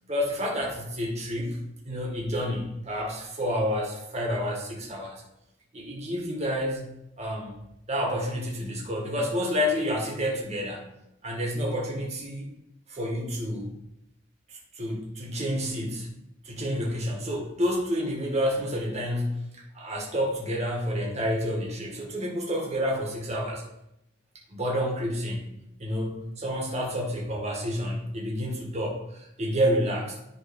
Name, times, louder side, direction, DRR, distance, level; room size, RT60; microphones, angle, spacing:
voice 1, 0.1-1.6 1.9-5.2 5.7-6.9 7.2-7.5 7.9-10.9 11.2-12.5 12.9-13.7 14.5-16.1 16.4-23.6 24.5-25.5 25.8-30.2, equal, 35° right, -1 dB, 1.7 m, -29 dB
10.0 x 3.7 x 5.3 m, 0.84 s
head